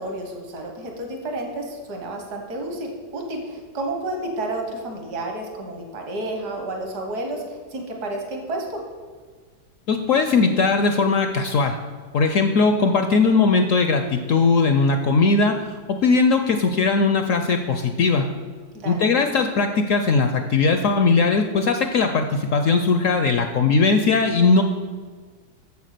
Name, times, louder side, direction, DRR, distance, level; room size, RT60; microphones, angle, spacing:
voice 1, 0.0-8.8 18.8-19.1, right 2 dB, 65° right, 2 dB, 1.9 m, -31 dB
voice 2, 9.9-11.8 12.1-15.6 15.9-18.3 18.9-24.6, left 4 dB, 70° left, 7 dB, 0.8 m, -19 dB
8.2 x 7.2 x 6.6 m, 1.5 s
omnidirectional pair, 1.9 m